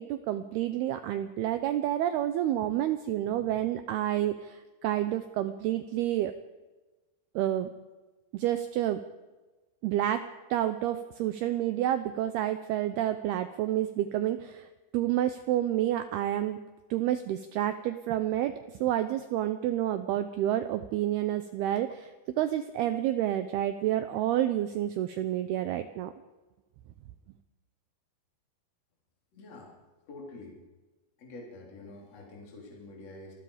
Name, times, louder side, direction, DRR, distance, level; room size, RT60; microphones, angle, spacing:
voice 1, 0.0-6.3 7.4-7.7 8.3-9.0 9.8-10.2 10.5-14.7 14.9-16.6 16.9-22.1 22.4-26.1, right 12 dB, 80° right, 10 dB, 2.3 m, -29 dB
voice 2, 29.3-29.7 30.1-30.6 31.2-33.3, left 2 dB, 35° left, -2 dB, 4.6 m, -46 dB
28.0 x 19.5 x 5.0 m, 1.2 s
omnidirectional pair, 5.5 m